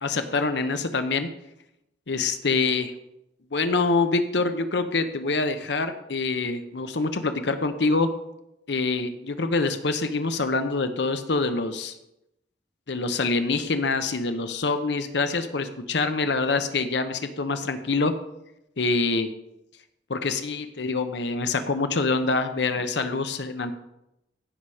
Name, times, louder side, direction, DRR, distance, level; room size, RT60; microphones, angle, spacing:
voice 1, 0.0-1.3 2.1-2.9 3.5-8.1 8.7-11.9 12.9-18.1 18.8-19.3 20.1-23.7, left 3 dB, 70° left, 9 dB, 0.8 m, -25 dB
16.0 x 5.7 x 4.9 m, 0.86 s
head